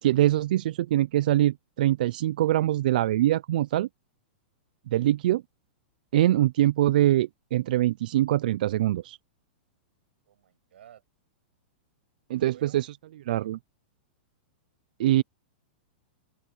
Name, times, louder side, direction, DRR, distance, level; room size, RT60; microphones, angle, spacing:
voice 1, 0.0-3.9 4.9-5.4 6.1-9.2 12.3-12.9 13.2-13.6 15.0-15.2, right 14 dB, 50° right, 0.3 m, -23 dB
voice 2, 10.2-11.0 12.3-12.8 13.4-13.5, right 10 dB, 80° right, 6.7 m, -54 dB
open air
supercardioid pair, 175°, 6 cm